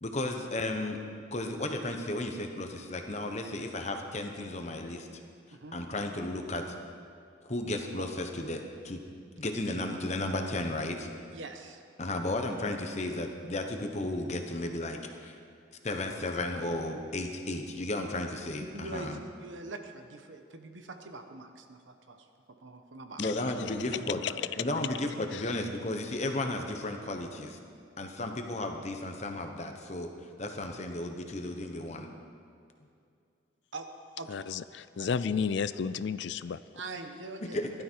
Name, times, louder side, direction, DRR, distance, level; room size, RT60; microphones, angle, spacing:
voice 1, 0.0-1.0 1.3-5.1 5.7-6.7 7.5-9.0 9.4-11.1 12.0-15.4 15.8-19.2 23.2-24.2 24.6-27.6 28.0-30.1 30.4-32.1 37.4-37.7, left 2 dB, 35° left, 5 dB, 1.1 m, -34 dB
voice 2, 11.3-11.8 18.6-23.2 24.7-24.8 33.7-33.9 34.2-34.5 35.0-35.1 36.8-37.6, right 2 dB, 75° right, 6 dB, 1.1 m, -43 dB
voice 3, 34.3-36.6, left 6 dB, 65° left, 15 dB, 0.4 m, -32 dB
16.0 x 12.5 x 4.6 m, 2.4 s
head